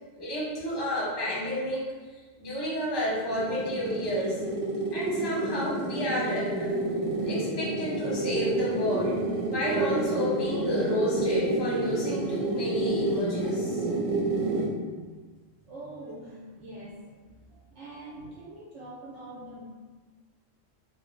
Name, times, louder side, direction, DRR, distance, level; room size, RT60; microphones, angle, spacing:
voice 1, 0.2-1.8 2.4-4.4 4.9-6.7 7.2-9.2 9.5-13.8, equal, 25° left, -6 dB, 0.6 m, -30 dB
sound 1, 3.0-14.8, right 2 dB, 50° right, 0.7 m, -29 dB
voice 2, 15.6-17.2 17.6-19.6, right 1 dB, 70° right, -7 dB, 0.9 m, -43 dB
3.1 x 2.0 x 3.0 m, 1.4 s
omnidirectional pair, 1.3 m